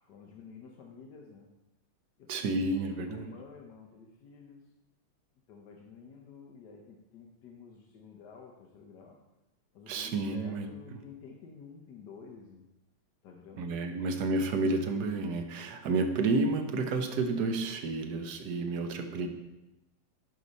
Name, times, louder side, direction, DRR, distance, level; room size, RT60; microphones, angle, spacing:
voice 1, 0.0-1.5 2.2-2.3 2.8-4.6 5.5-9.2 9.7-12.7 13.2-14.0, left 5 dB, 65° left, 0 dB, 1.3 m, -51 dB
voice 2, 2.3-3.3 9.9-11.0 13.6-19.3, right 3 dB, 60° right, 5 dB, 1.3 m, -31 dB
11.5 x 4.9 x 4.1 m, 0.98 s
omnidirectional pair, 2.2 m